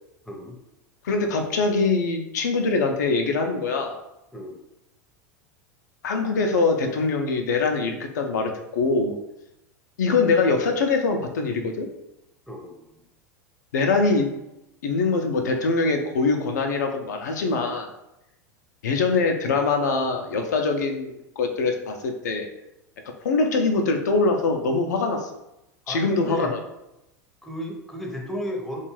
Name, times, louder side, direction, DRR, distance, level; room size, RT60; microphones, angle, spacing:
voice 1, 0.3-0.6 4.3-4.6 12.5-13.0 25.9-26.5 27.4-28.8, equal, ahead, -1 dB, 0.6 m, -34 dB
voice 2, 1.0-4.0 6.0-9.2 10.0-11.9 13.7-14.3 14.8-17.9 18.8-22.5 23.2-25.3 25.9-26.6, left 3 dB, 80° left, 4 dB, 0.4 m, -23 dB
2.5 x 2.2 x 3.1 m, 0.89 s
hypercardioid pair, 95°, 9 cm